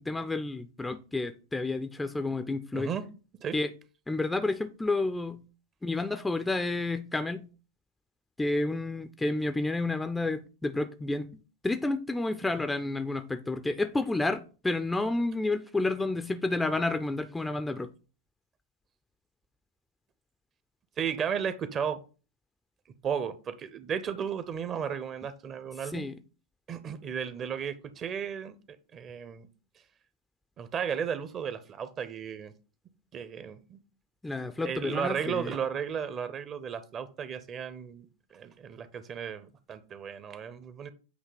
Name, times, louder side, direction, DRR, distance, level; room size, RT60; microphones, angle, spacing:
voice 1, 0.0-2.9 3.5-3.7 4.1-5.4 5.8-7.5 8.4-11.3 11.6-17.9 25.9-26.1 34.2-35.5, left 2 dB, 10° left, 0.5 m, -30 dB
voice 2, 2.7-3.1 3.4-3.6 21.0-22.0 23.0-26.1 26.7-29.5 30.6-32.5 33.1-33.8 34.6-38.1 38.3-40.9, right 7 dB, 25° right, 0.7 m, -34 dB
8.1 x 2.8 x 5.2 m
figure-of-eight pair, 90°, 0 cm